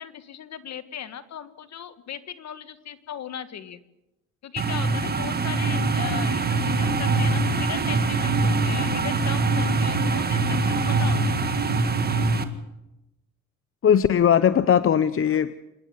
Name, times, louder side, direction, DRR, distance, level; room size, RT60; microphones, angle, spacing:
voice 1, 0.0-3.8 4.4-11.7, left 9 dB, 60° left, 11 dB, 1.6 m, -38 dB
sound 1, 4.6-12.4, right 3 dB, 30° right, 1.8 m, -23 dB
voice 2, 13.8-15.6, left 8 dB, 45° left, 14 dB, 0.7 m, -19 dB
27.0 x 10.5 x 9.3 m, 0.93 s
cardioid pair, 90°, 30 cm